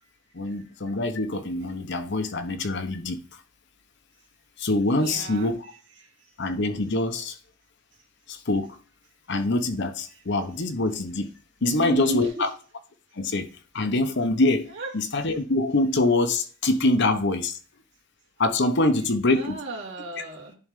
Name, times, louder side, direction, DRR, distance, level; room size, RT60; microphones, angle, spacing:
voice 1, 0.3-3.2 4.6-5.6 6.4-7.4 8.3-8.8 9.3-11.3 11.6-12.5 13.1-17.6 18.4-19.6, left 2 dB, 55° left, 0.9 m, -24 dB
voice 2, 4.9-5.6 6.0-6.3 11.6-12.5 14.7-14.9 19.3-20.6, right 3 dB, 60° right, 2.3 m, -34 dB
10.5 x 3.9 x 3.7 m
head